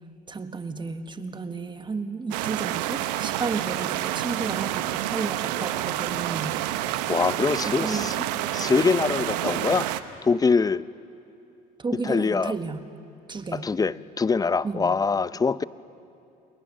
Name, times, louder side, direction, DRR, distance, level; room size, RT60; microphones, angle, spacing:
voice 1, 0.3-6.6 7.6-8.1 11.8-12.9 13.3-13.7 14.6-15.0, right 4 dB, 25° right, 8 dB, 1.4 m, -32 dB
sound 1, 2.3-10.0, right 13 dB, 85° right, 1.0 m, -28 dB
voice 2, 7.1-8.1 8.5-9.9 10.2-10.8 12.0-12.5 13.5-15.6, left 4 dB, 20° left, 17 dB, 0.6 m, -23 dB
29.0 x 21.0 x 6.5 m, 2.7 s
supercardioid pair, 85°, 20 cm